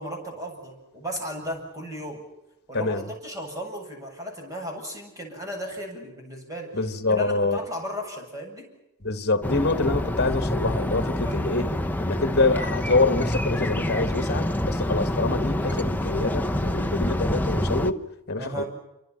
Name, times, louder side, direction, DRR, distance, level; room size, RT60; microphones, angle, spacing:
voice 1, 0.0-2.2 2.7-6.8 7.1-8.7 11.2-11.4 18.4-18.7, equal, 15° right, 7.7 m, -35 dB
voice 2, 6.7-7.6 9.0-11.7 12.0-18.0 18.3-18.6, left 3 dB, 50° left, 1.8 m, -25 dB
sound 1, 9.4-17.9, left 1 dB, 10° left, 0.8 m, -27 dB
28.0 x 25.0 x 5.9 m
head